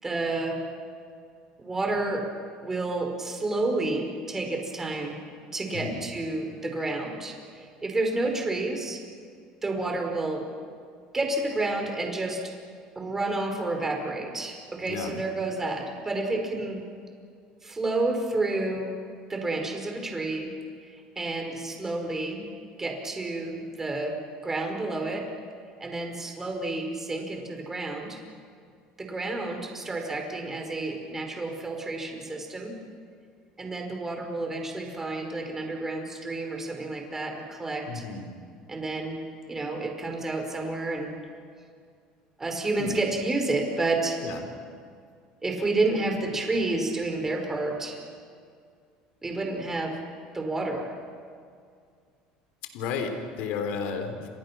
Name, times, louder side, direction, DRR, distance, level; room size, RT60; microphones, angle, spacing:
voice 1, 0.0-0.6 1.6-2.3 2.6-5.2 5.5-9.0 9.6-10.4 11.1-12.4 13.0-16.8 17.6-18.9 19.3-20.5 20.9-22.5 22.8-24.1 24.4-25.2 25.8-28.2 29.0-32.7 33.6-38.0 38.7-39.2 39.5-41.1 42.4-44.2 45.4-48.0 49.2-50.0 50.3-50.9, right 2 dB, 15° right, 3 dB, 5.3 m, -30 dB
voice 2, 5.7-6.1 14.9-15.2 37.9-38.3 42.8-43.0 44.2-44.5 52.7-54.3, left 5 dB, 70° left, 6 dB, 3.6 m, -33 dB
30.0 x 26.5 x 6.2 m, 2.2 s
cardioid pair, 130°, 3 cm